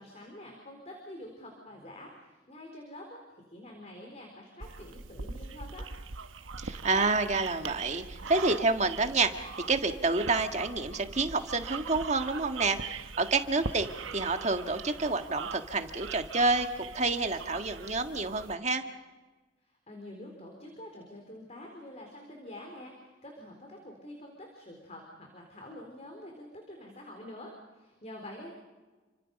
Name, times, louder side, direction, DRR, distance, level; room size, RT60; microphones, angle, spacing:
voice 1, 0.0-5.9 19.6-28.5, left 1 dB, 35° left, 1 dB, 4.0 m, -47 dB
sound 1, 4.6-18.6, right 5 dB, 90° right, 1.0 m, -42 dB
voice 2, 6.6-9.3 9.7-13.9 14.1-18.8, right 3 dB, 35° right, 6 dB, 1.7 m, -28 dB
29.5 x 25.0 x 5.4 m, 1.3 s
head